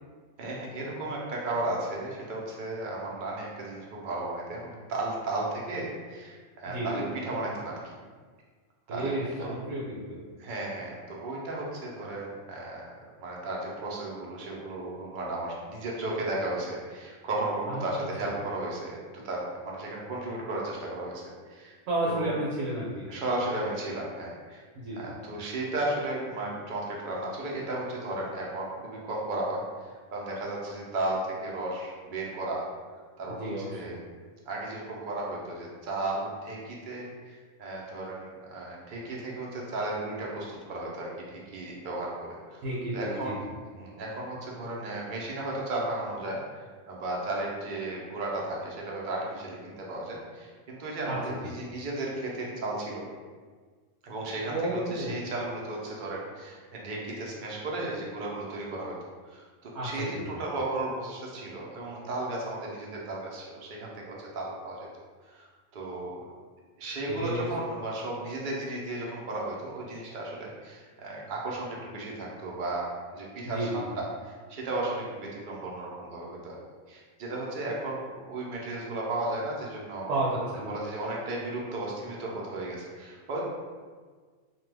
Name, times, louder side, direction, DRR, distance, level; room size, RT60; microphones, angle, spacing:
voice 1, 0.4-7.9 8.9-9.1 10.4-12.8 13.2-21.2 21.5-21.8 22.1-22.3 23.1-24.6 24.9-32.6 33.2-34.0 34.5-42.6 42.9-43.4 43.7-53.0 54.0-58.9 59.3-64.9 65.3-66.3 66.8-76.6 76.9-80.1 80.7-83.4, right 2 dB, 55° right, -3 dB, 0.6 m, -34 dB
voice 2, 6.7-7.1 8.9-10.2 17.7-17.8 18.2-18.3 21.9-23.1 24.7-25.1 33.4-33.9 42.6-43.4 51.0-51.5 54.5-55.2 59.7-60.4 67.1-67.4 73.4-73.8 80.1-80.8, right 1 dB, 70° right, -6 dB, 1.0 m, -32 dB
2.8 x 2.3 x 3.3 m, 1.5 s
omnidirectional pair, 1.4 m